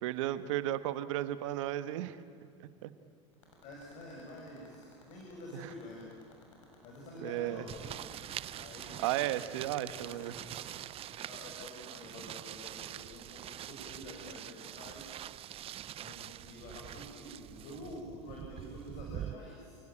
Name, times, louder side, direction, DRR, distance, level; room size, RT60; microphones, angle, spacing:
voice 1, 0.0-2.2 2.8-2.9 5.5-5.7 7.2-7.6 9.0-10.3, right 13 dB, 75° right, 12 dB, 1.5 m, -34 dB
sound 1, 3.3-10.8, left 5 dB, 90° left, 7.4 m, -57 dB
voice 2, 3.6-6.1 6.8-7.9 8.6-9.0 9.9-10.2 11.0-15.1 16.0-19.8, left 1 dB, 50° left, -2 dB, 7.0 m, -48 dB
sound 2, 7.7-19.3, right 12 dB, 35° right, 0.7 m, -45 dB
28.5 x 18.5 x 9.0 m, 2.6 s
supercardioid pair, 105°, 16 cm